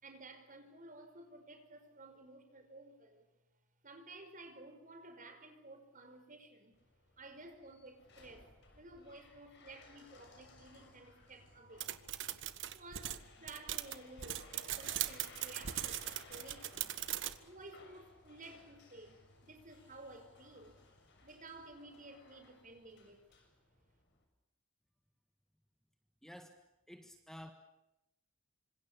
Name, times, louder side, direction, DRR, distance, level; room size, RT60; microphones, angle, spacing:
voice 1, 0.0-3.3 3.8-6.8 7.2-12.0 12.7-17.0 17.4-20.8 21.2-23.3, right 2 dB, 40° right, 7 dB, 5.1 m, -54 dB
sound 1, 6.7-24.2, left 3 dB, 55° left, 6.9 m, -61 dB
sound 2, 11.8-17.4, right 12 dB, 60° right, 1.4 m, -40 dB
voice 2, 26.2-27.5, equal, ahead, 6 dB, 1.7 m, -52 dB
27.0 x 26.0 x 6.9 m, 0.90 s
head